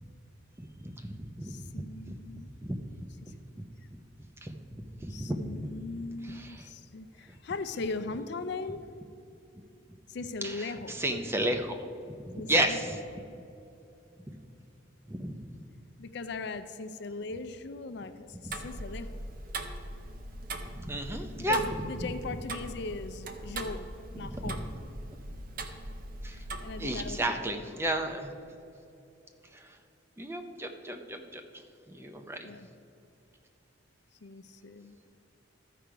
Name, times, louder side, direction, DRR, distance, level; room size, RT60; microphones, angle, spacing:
voice 1, 0.6-0.9 1.2-2.2 2.6-2.8 3.9-4.0 4.4-4.6 5.0-5.7 6.3-6.6 10.4-10.5 11.0-11.8 12.3-12.8 14.3-14.4 15.1-15.3 20.9-21.6 24.3-24.5 26.2-26.4 26.8-28.3 30.2-31.4 31.9-32.5, right 1 dB, 15° right, 5 dB, 0.6 m, -32 dB
voice 2, 1.4-2.5 3.2-3.3 5.1-8.9 10.1-11.0 12.4-13.0 16.0-19.1 21.4-24.7 26.3-27.7 32.4-32.7 34.2-34.9, left 3 dB, 60° left, 10 dB, 0.5 m, -39 dB
Tick-tock, 18.5-27.2, right 2 dB, 50° right, 0.7 m, -40 dB
13.5 x 5.0 x 4.6 m, 2.7 s
head